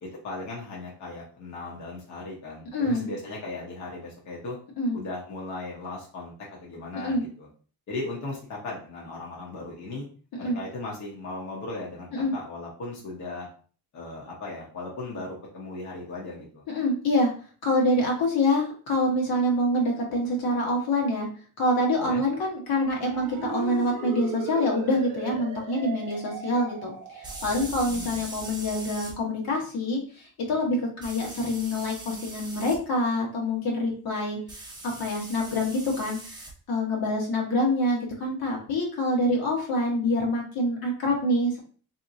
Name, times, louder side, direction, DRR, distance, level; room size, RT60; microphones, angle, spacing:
voice 1, 0.0-4.6 4.9-6.3 6.6-7.5 7.9-10.0 10.4-13.5 13.9-16.6 22.0-22.2 27.9-28.2, left 2 dB, 50° left, -3 dB, 1.0 m, -37 dB
voice 2, 2.7-3.1 4.8-5.0 6.9-7.2 10.4-10.6 12.1-12.3 16.7-17.3 17.6-21.3 21.6-34.4 34.8-41.6, left 1 dB, 75° left, -1 dB, 1.3 m, -26 dB
sound 1, 22.9-27.7, right 7 dB, 65° right, 0.6 m, -37 dB
sound 2, 23.8-23.9 27.2-29.1 31.0-32.8 34.5-36.5, right 2 dB, 10° right, 0.6 m, -41 dB
3.6 x 2.8 x 2.7 m, 0.42 s
cardioid pair, 160°, 37 cm